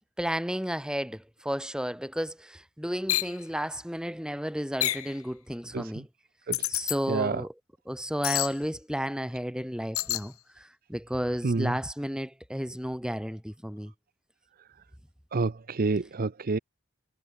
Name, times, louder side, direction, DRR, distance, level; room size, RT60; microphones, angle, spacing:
voice 1, 0.2-6.1 6.7-7.5 7.9-13.9, equal, 5° right, 5.5 m, -33 dB
sound 1, 3.1-3.3 4.8-5.1 6.5-7.0 8.2-8.5 9.9-10.3, left 15 dB, 90° left, 1.6 m, -28 dB
voice 2, 15.3-16.6, right 3 dB, 45° right, 0.6 m, -28 dB
head